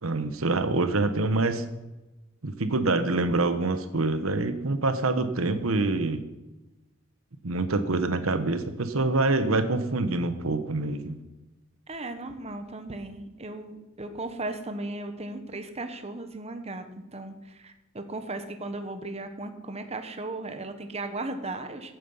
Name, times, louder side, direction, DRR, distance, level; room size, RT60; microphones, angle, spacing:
voice 1, 0.0-1.6 2.4-6.2 7.4-11.2, right 2 dB, 85° right, 10 dB, 1.1 m, -26 dB
voice 2, 11.9-16.9 17.1-21.9, right 2 dB, 30° right, 7 dB, 1.3 m, -36 dB
14.5 x 9.2 x 5.6 m, 1.1 s
head